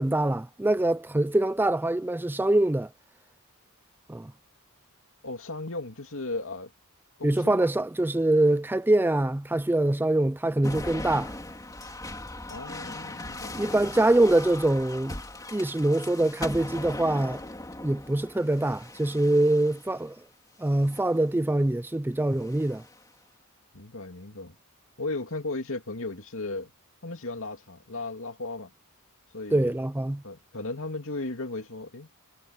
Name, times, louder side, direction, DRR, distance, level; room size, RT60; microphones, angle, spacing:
voice 1, 0.0-2.9 4.1-4.3 7.2-11.3 13.5-15.2 15.5-17.4 17.8-20.2 20.6-22.8 29.5-30.2, right 1 dB, 10° right, 0.4 m, -24 dB
voice 2, 5.2-6.7 7.2-7.7 12.5-13.9 23.7-24.6 25.0-26.7 27.0-28.7 29.3-29.7 30.2-32.1, left 2 dB, 60° left, 2.7 m, -36 dB
sound 1, 10.6-20.0 20.7-21.2 22.3-23.0, left 2 dB, 15° left, 3.0 m, -39 dB
head